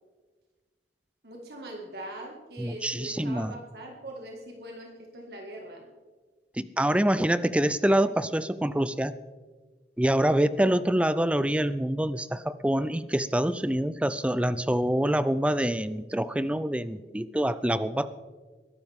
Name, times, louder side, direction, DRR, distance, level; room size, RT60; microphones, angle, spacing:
voice 1, 1.2-5.9, right 1 dB, 65° right, 0 dB, 2.0 m, -41 dB
voice 2, 2.6-3.5 6.6-9.1 10.0-18.1, right 1 dB, 5° right, 15 dB, 0.4 m, -26 dB
21.5 x 12.0 x 3.6 m, 1.4 s
head